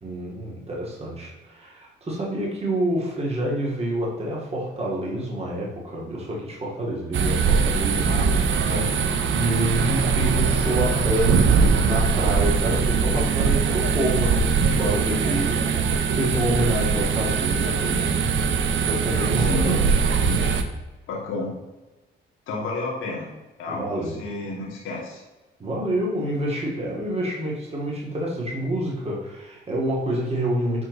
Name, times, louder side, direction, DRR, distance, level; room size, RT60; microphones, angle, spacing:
voice 1, 0.0-8.2 8.7-8.9 9.3-18.4 18.8-20.0 23.7-24.2 25.6-30.9, right 1 dB, 30° right, -4 dB, 2.9 m, -28 dB
sound 1, 7.1-20.6, right 5 dB, 75° right, 0.9 m, -21 dB
voice 2, 8.0-8.9 19.4-20.6 21.1-21.5 22.5-23.3 23.6-25.2, left 2 dB, 85° left, -3 dB, 2.7 m, -31 dB
9.7 x 4.8 x 4.2 m, 1.1 s
cardioid pair, 90°, 20 cm